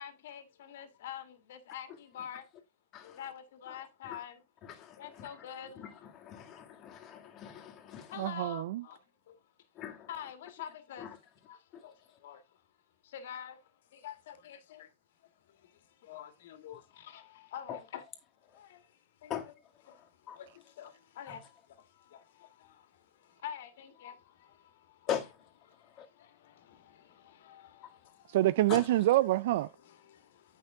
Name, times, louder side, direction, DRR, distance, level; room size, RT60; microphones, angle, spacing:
voice 1, 0.0-2.5 3.0-4.4 5.0-6.1 6.3-6.5 8.1-9.0 9.3-9.4 10.1-11.2 11.5-12.4 13.0-13.6 13.9-14.9 15.2-18.0 18.5-18.9 19.2-19.5 19.8-25.1 25.7-28.4 29.8-30.6, left 9 dB, 65° left, 1.9 m, -47 dB
voice 2, 4.6-5.3 5.8-8.1 9.8-10.1 11.0-11.1 11.7-11.8 17.7-17.8 19.3-19.5 20.3-20.4 21.3-21.4 25.1-25.3 26.0-26.1 28.7-28.8, left 9 dB, 30° left, 2.1 m, -40 dB
voice 3, 8.2-8.8 28.3-29.7, right 15 dB, 60° right, 0.3 m, -26 dB
8.9 x 6.0 x 3.7 m
hypercardioid pair, 145°, 0 cm